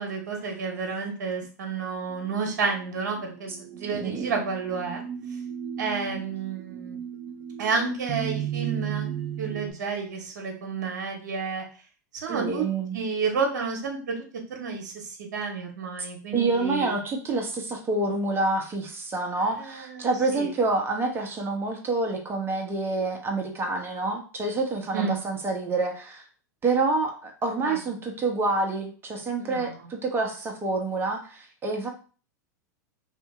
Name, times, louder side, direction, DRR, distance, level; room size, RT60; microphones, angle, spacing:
voice 1, 0.0-5.0 5.8-7.0 7.6-9.1 9.4-11.7 12.1-12.6 12.9-14.2 14.5-16.9 19.4-20.5 24.9-25.2 27.6-27.8 29.4-29.7, right 5 dB, 70° right, 2 dB, 1.1 m, -30 dB
sound 1, 2.1-9.7, right 9 dB, 50° right, 0.8 m, -35 dB
voice 2, 3.9-4.3 6.1-6.2 12.3-13.0 16.3-26.2 26.6-31.9, right 3 dB, 25° right, 2 dB, 1.0 m, -27 dB
2.8 x 2.7 x 3.6 m, 0.38 s
hypercardioid pair, 105°, 10 cm